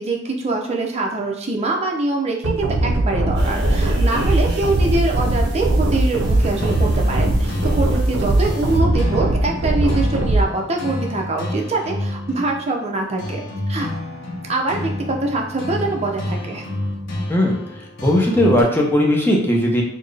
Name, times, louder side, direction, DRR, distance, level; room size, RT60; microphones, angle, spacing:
voice 1, 0.0-13.4 13.7-13.9 14.5-16.6, right 2 dB, 35° right, 1 dB, 0.5 m, -24 dB
sound 1, 2.4-10.4, right 2 dB, 85° right, 0.5 m, -20 dB
sound 2, 3.3-8.8, equal, 55° right, 0.9 m, -27 dB
sound 3, 6.2-18.6, left 1 dB, 65° left, 0.7 m, -29 dB
voice 2, 17.3-19.8, left 1 dB, 10° left, -1 dB, 0.6 m, -18 dB
4.0 x 2.1 x 3.3 m, 0.70 s
head